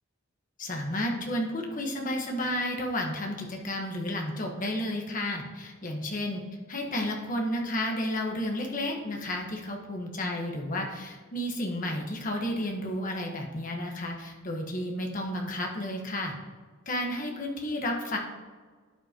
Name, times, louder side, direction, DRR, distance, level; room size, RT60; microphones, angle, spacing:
voice 1, 0.6-6.4 6.7-16.3 16.9-18.2, left 1 dB, 40° left, 1 dB, 1.3 m, -32 dB
12.0 x 8.4 x 2.9 m, 1.5 s
head